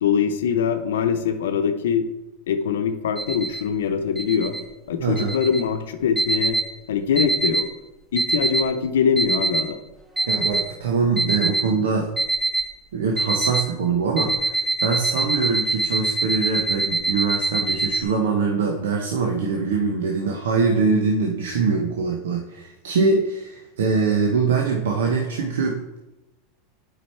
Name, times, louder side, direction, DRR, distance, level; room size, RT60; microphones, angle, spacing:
voice 1, 0.0-2.1 2.5-4.6 4.9-6.6 6.9-7.7 8.1-9.8, left 7 dB, 85° left, 8 dB, 0.7 m, -23 dB
sound 1, 3.2-3.6 4.2-4.6 5.2-5.6 6.2-6.7 7.2-7.7 8.2-8.7 9.2-9.7 10.2-10.7 11.2-11.7 12.2-12.7 13.2-13.7 14.2-18.0, right 2 dB, 15° right, 1.7 m, -24 dB
voice 2, 5.0-5.3 10.3-12.1 12.9-14.5 14.8-25.8, right 4 dB, 90° right, 1 dB, 0.9 m, -23 dB
7.8 x 5.1 x 4.4 m, 0.99 s
supercardioid pair, 115°, 0 cm